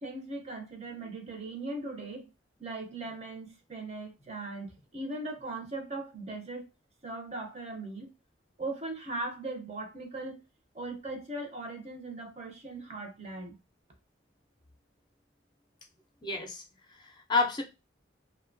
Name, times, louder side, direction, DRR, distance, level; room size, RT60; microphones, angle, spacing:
voice 1, 0.0-2.3 2.6-6.7 7.0-8.1 8.6-10.4 10.7-13.6, right 2 dB, 35° right, 0.6 m, -39 dB
voice 2, 16.2-16.6 17.0-17.6, left 3 dB, 25° left, 0.5 m, -29 dB
2.8 x 2.2 x 2.5 m
head